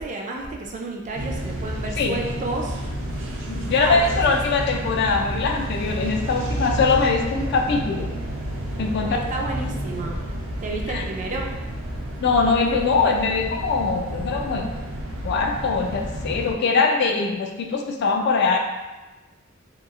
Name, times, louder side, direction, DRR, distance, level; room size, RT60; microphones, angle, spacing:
voice 1, 0.0-2.8 3.7-4.4 9.0-10.2 10.6-11.5, right 2 dB, 35° right, 0 dB, 0.3 m, -31 dB
sound 1, 1.1-16.5, right 1 dB, 85° right, 0.6 m, -30 dB
voice 2, 3.5-8.1 8.8-9.2 10.9-11.0 12.2-14.7 15.2-18.6, left 4 dB, 55° left, 2 dB, 0.3 m, -22 dB
2.9 x 2.3 x 2.3 m, 1.1 s
head